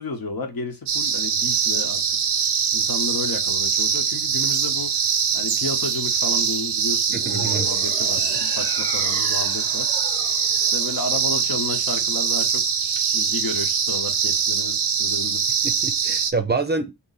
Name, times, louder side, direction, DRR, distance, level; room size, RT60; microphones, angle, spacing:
voice 1, 0.0-2.2 2.7-5.0 5.3-9.9 10.6-12.6 13.1-15.4, left 2 dB, 60° left, 1.0 m, -32 dB
sound 1, 0.9-16.3, right 6 dB, 90° right, 0.6 m, -23 dB
voice 2, 7.1-7.8 15.6-16.9, right 4 dB, 25° right, 0.5 m, -26 dB
sound 2, 7.2-11.6, left 1 dB, 10° left, 0.8 m, -38 dB
2.8 x 2.7 x 3.9 m
cardioid pair, 70°, 39 cm